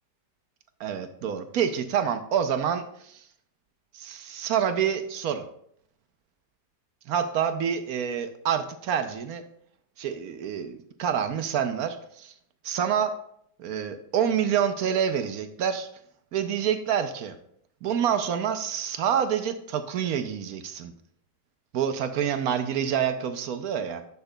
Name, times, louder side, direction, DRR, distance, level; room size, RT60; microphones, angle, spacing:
voice 1, 0.8-3.3 3.9-5.5 7.1-9.4 10.0-12.3 12.6-13.2 13.6-15.9 16.3-17.3 17.8-20.9 21.7-24.0, right 8 dB, 70° right, 9 dB, 1.0 m, -27 dB
10.0 x 7.0 x 2.2 m, 0.68 s
omnidirectional pair, 1.8 m